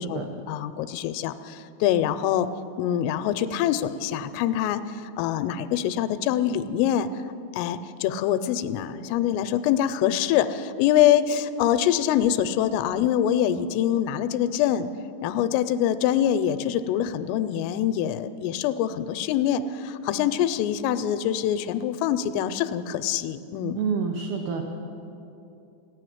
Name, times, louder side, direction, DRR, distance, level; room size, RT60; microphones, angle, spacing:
voice 1, 0.0-2.5 2.8-7.1 7.5-14.9 15.2-23.8, left 10 dB, 85° left, 12 dB, 3.1 m, -24 dB
voice 2, 23.7-24.6, right 6 dB, 90° right, 3 dB, 2.1 m, -27 dB
14.0 x 9.6 x 9.3 m, 2.7 s
omnidirectional pair, 5.7 m